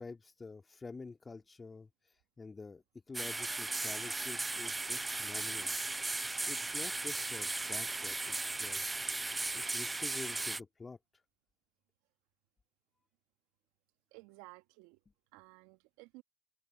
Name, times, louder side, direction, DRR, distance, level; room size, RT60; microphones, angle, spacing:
voice 1, 0.0-1.9 2.4-5.7 6.5-8.8 9.5-11.0, left 4 dB, 25° left, 2.0 m, -48 dB
sound 1, 3.1-10.6, right 2 dB, 15° right, 0.4 m, -36 dB
voice 2, 14.1-15.0 15.3-16.2, right 24 dB, 75° right, 1.4 m, -55 dB
hypercardioid pair, 65°, 0 cm